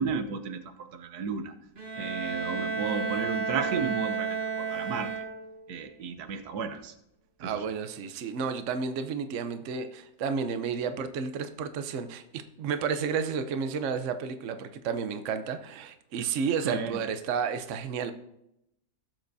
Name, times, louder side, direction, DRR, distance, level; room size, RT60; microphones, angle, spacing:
voice 1, 0.0-1.5 2.0-5.1 5.7-6.9 7.4-7.6 16.6-17.0, right 6 dB, 85° right, 9 dB, 1.3 m, -33 dB
Bowed string instrument, 1.8-5.7, right 5 dB, 35° right, 1.4 m, -32 dB
voice 2, 7.4-18.1, right 6 dB, 60° right, 9 dB, 1.0 m, -31 dB
16.0 x 7.8 x 2.7 m, 0.81 s
omnidirectional pair, 1.6 m